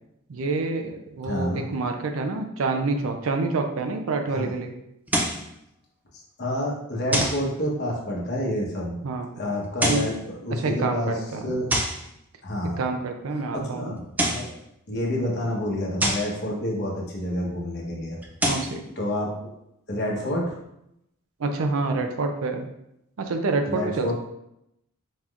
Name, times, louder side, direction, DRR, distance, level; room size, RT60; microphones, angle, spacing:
voice 1, 0.3-4.7 9.0-9.3 9.9-10.1 10.5-11.5 12.6-14.0 18.5-18.9 21.4-22.7 23.2-24.1, right 3 dB, 70° right, 5 dB, 0.5 m, -27 dB
voice 2, 1.2-1.6 4.3-4.5 6.4-9.0 9.3-11.7 12.4-12.8 13.5-14.0 14.3-14.6 14.9-18.2 19.0-19.5 19.9-20.6 23.7-24.1, left 1 dB, 50° left, -3 dB, 1.0 m, -28 dB
sound 1, 5.1-5.5 7.1-7.5 9.6-10.2 11.7-12.1 14.0-14.5 16.0-16.3 18.2-18.7, right 1 dB, 10° right, 0.3 m, -25 dB
4.3 x 3.5 x 2.4 m, 0.81 s
head